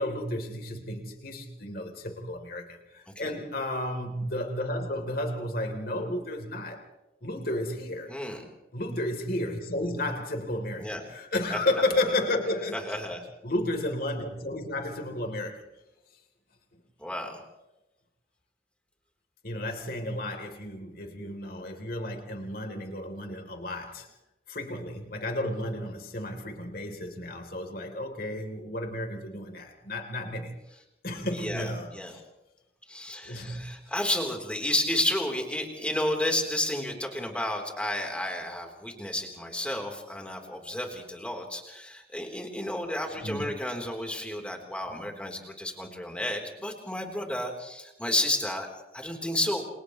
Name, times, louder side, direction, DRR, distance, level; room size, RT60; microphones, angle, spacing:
voice 1, 0.0-6.9 7.2-8.1 8.7-13.0 13.4-15.6 19.4-24.1 24.5-30.6 31.0-32.2 33.2-33.8 38.9-39.0 43.2-43.6, left 1 dB, 50° left, 3 dB, 3.5 m, -32 dB
voice 2, 8.1-8.4 10.8-11.0 11.5-11.6 12.7-13.2 17.0-17.4 31.3-32.1 32.9-48.7 48.9-49.6, left 1 dB, 5° left, 2 dB, 3.7 m, -31 dB
29.0 x 28.5 x 3.2 m, 0.98 s
head